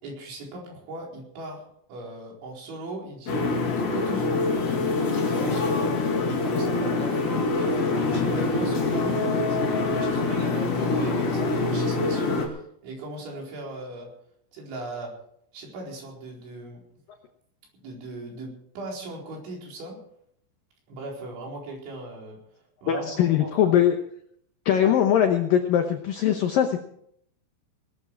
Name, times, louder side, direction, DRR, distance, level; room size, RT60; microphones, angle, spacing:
voice 1, 0.0-1.6 1.9-5.9 6.3-9.6 9.9-14.1 14.5-15.1 15.5-16.8 17.8-20.0 20.9-22.4 22.8-23.8 24.8-24.9, right 1 dB, 75° right, -1 dB, 6.8 m, -38 dB
sound 1, 3.3-12.5, left 3 dB, 40° left, 2.8 m, -25 dB
voice 2, 22.9-24.0 24.7-26.8, left 9 dB, 80° left, 5 dB, 2.0 m, -21 dB
19.5 x 13.0 x 4.7 m, 0.69 s
omnidirectional pair, 5.4 m